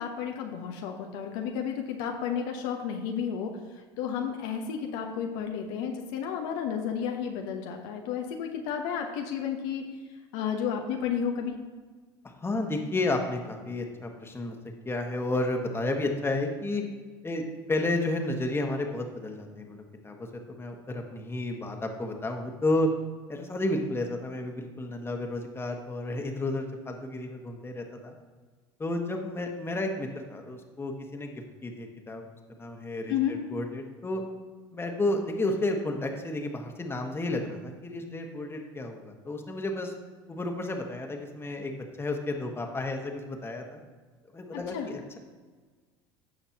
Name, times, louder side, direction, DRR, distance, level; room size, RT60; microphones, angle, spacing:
voice 1, 0.0-3.5 4.0-9.9 10.3-11.5 33.1-33.3 44.5-44.9, left 8 dB, 70° left, 3 dB, 1.0 m, -32 dB
voice 2, 12.4-14.5 14.8-16.8 17.2-22.9 23.3-28.1 28.8-31.3 31.6-32.3 32.6-34.2 34.7-39.9 40.3-43.8 44.3-45.2, left 2 dB, 20° left, 3 dB, 1.4 m, -32 dB
15.5 x 5.8 x 2.9 m, 1.4 s
hypercardioid pair, 80°, 13 cm